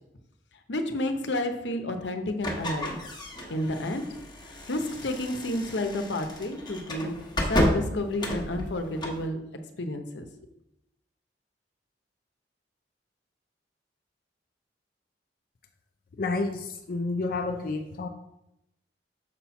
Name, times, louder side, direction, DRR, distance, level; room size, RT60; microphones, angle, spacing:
voice 1, 0.7-3.0 3.5-4.0 4.5-7.1 7.5-9.4 9.8-10.3, left 1 dB, 85° left, 6 dB, 0.9 m, -30 dB
sound 1, 2.4-9.3, equal, 25° left, 1.1 m, -32 dB
voice 2, 16.2-18.1, left 3 dB, 55° left, 4 dB, 0.5 m, -30 dB
6.8 x 4.3 x 5.8 m, 0.85 s
head